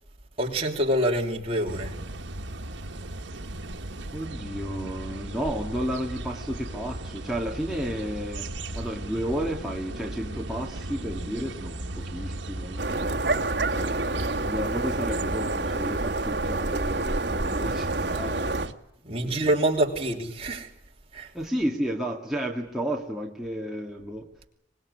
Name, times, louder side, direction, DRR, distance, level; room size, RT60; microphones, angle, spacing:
voice 1, 0.4-1.9 19.0-20.7 21.1-21.3, right 1 dB, 30° right, 3.0 m, -26 dB
sound 1, 1.7-18.7, right 1 dB, 80° right, 1.4 m, -36 dB
voice 2, 4.1-13.2 13.7-18.6 19.1-19.6 21.3-24.3, equal, ahead, 2.0 m, -32 dB
sound 2, 12.8-18.7, right 2 dB, 60° right, 1.7 m, -28 dB
24.5 x 20.5 x 9.7 m
head